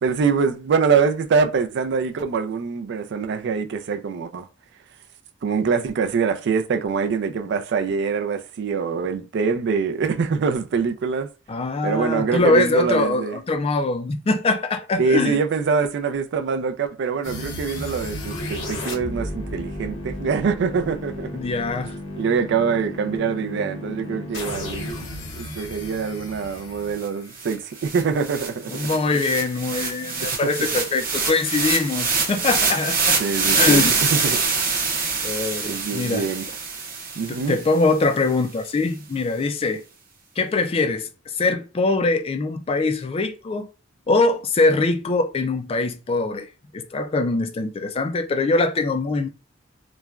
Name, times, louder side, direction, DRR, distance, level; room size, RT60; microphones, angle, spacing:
voice 1, 0.0-4.5 5.4-11.3 11.8-13.4 15.0-21.3 21.8-25.0 25.4-28.9 30.4-30.5 33.2-33.8 34.1-34.4 35.7-36.5 37.2-37.6, right 5 dB, 65° right, 0.4 m, -24 dB
voice 2, 11.5-15.4 21.3-22.0 28.7-33.2 33.5-34.1 35.2-36.3 37.3-39.8 40.4-41.1 41.4-43.7 44.1-46.5 46.7-49.3, left 3 dB, 30° left, 0.3 m, -22 dB
sound 1, 17.2-28.2, left 1 dB, 80° left, 0.9 m, -34 dB
sound 2, 27.0-27.1 27.4-37.7, right 4 dB, 45° right, 0.7 m, -25 dB
3.1 x 2.2 x 2.3 m
head